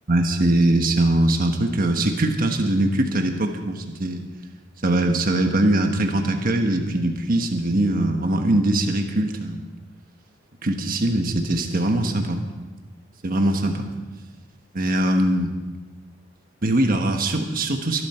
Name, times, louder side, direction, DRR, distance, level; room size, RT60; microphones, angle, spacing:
voice 1, 0.1-4.2 4.8-9.7 10.6-12.4 13.2-13.9 14.7-15.5 16.6-18.1, right 1 dB, 50° right, 4 dB, 1.4 m, -21 dB
22.5 x 11.5 x 4.4 m, 1.2 s
head